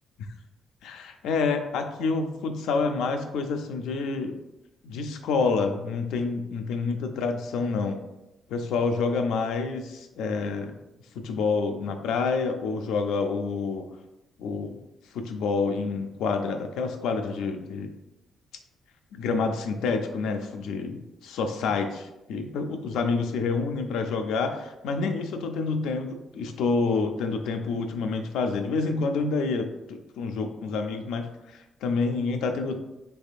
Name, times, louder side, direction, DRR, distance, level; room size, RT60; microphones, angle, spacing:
voice 1, 0.8-4.3 4.8-8.0 8.5-10.7 11.1-13.9 14.4-14.8 15.1-17.9 19.1-32.8, left 4 dB, 85° left, 6 dB, 0.4 m, -28 dB
3.4 x 3.3 x 2.4 m, 0.94 s
cardioid pair, 90°, 0 cm